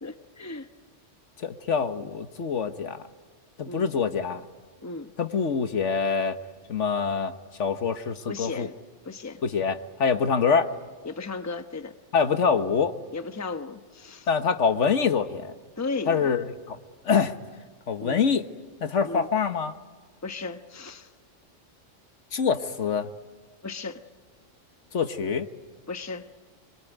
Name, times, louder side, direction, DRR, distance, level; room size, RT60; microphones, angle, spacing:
voice 1, 0.0-0.7 3.7-3.9 4.8-5.1 8.3-8.7 9.0-9.4 11.0-12.0 13.1-14.3 15.8-16.3 18.0-18.3 19.0-19.3 20.2-21.1 23.6-24.0 25.9-26.3, left 3 dB, 15° left, 8 dB, 1.0 m, -35 dB
voice 2, 1.4-3.0 3.6-4.4 5.2-6.4 6.7-7.3 7.6-8.7 9.4-10.7 12.1-13.0 14.3-15.5 16.1-16.8 17.0-17.3 17.9-18.4 18.8-19.7 22.3-23.1 24.9-25.5, left 6 dB, 75° left, 9 dB, 1.5 m, -25 dB
26.0 x 23.5 x 9.2 m, 1.5 s
omnidirectional pair, 1.3 m